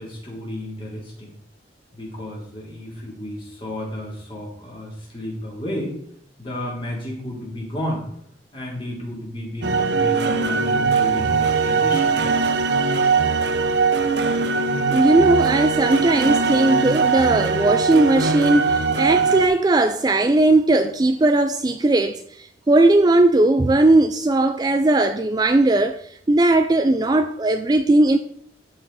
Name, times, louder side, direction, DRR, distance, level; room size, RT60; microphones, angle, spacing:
voice 1, 0.0-1.3 1.9-5.9 6.4-8.1 8.5-12.2, left 1 dB, 30° left, 3.3 m, -32 dB
sound 1, 9.6-19.5, right 5 dB, 70° right, 0.7 m, -20 dB
voice 2, 14.9-28.2, right 2 dB, 20° right, 0.3 m, -18 dB
13.0 x 4.8 x 4.1 m
head